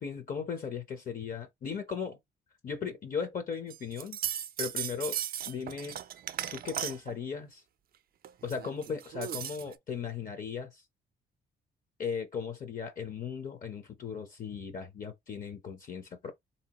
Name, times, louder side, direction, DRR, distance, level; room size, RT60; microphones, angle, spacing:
voice 1, 0.0-2.2 2.6-4.2 4.6-5.2 5.5-6.0 6.5-7.6 8.4-10.8 12.0-16.3, left 6 dB, 45° left, 0.7 m, -37 dB
sound 1, 3.7-7.2 8.2-9.7, right 10 dB, 50° right, 0.4 m, -37 dB
3.5 x 2.8 x 2.9 m
cardioid pair, 90°, 20 cm